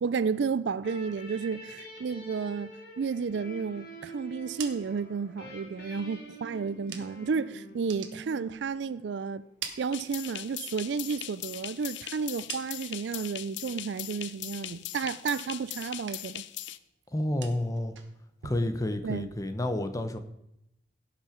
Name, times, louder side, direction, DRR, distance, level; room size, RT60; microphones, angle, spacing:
voice 1, 0.0-2.7 3.0-9.4 9.8-16.4 19.0-19.3, right 5 dB, 65° right, 0.4 m, -32 dB
sound 1, 0.8-9.3, right 1 dB, 55° left, 2.8 m, -46 dB
sound 2, 4.3-7.4 7.7-9.0 9.3-10.6 11.0-13.1 13.5-14.0 14.3-15.6 15.9-16.5 16.8-19.6, right 7 dB, 85° right, 1.3 m, -47 dB
sound 3, 9.9-16.8, left 13 dB, 70° left, 0.5 m, -40 dB
voice 2, 17.1-18.0 18.4-20.2, left 1 dB, 20° left, 0.8 m, -30 dB
16.5 x 5.7 x 5.1 m
head